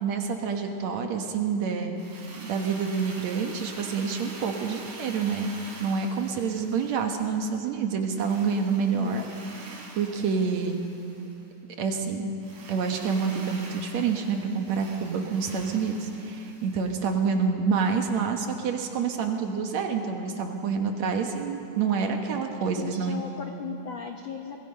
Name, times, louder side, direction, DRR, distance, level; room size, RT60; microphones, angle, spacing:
voice 1, 0.0-5.5 5.8-9.2 9.9-10.8 11.8-12.3 12.7-23.2, right 5 dB, 65° right, 4 dB, 2.5 m, -27 dB
Drill, 1.9-7.5 8.1-11.4 12.4-17.2, right 3 dB, 80° right, 4.5 m, -45 dB
voice 2, 8.9-9.2 22.8-24.6, left 7 dB, 70° left, 3 dB, 1.2 m, -36 dB
24.5 x 20.5 x 5.5 m, 2.8 s
omnidirectional pair, 3.6 m